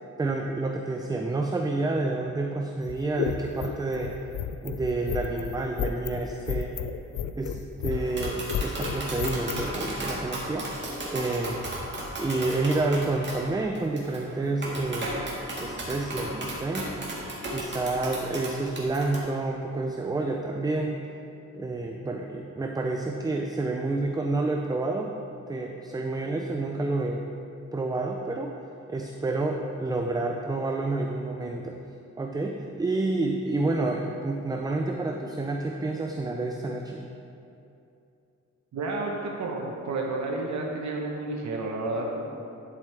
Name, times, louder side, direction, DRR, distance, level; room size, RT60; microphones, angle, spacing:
voice 1, 0.2-4.1 4.6-6.7 7.4-11.6 12.2-15.1 15.6-16.9 17.5-21.0 21.5-25.1 25.5-27.2 27.7-28.5 28.9-31.8 32.2-37.1, right 2 dB, 15° right, 2 dB, 0.4 m, -29 dB
sound 1, 2.8-9.7, left 9 dB, 85° left, 0.5 m, -32 dB
Tap, 7.9-19.2, right 1 dB, 40° right, 1.8 m, -35 dB
voice 2, 38.7-42.2, right 2 dB, 65° right, -1 dB, 1.1 m, -31 dB
11.0 x 6.9 x 3.4 m, 2.7 s
cardioid pair, 120°, 30 cm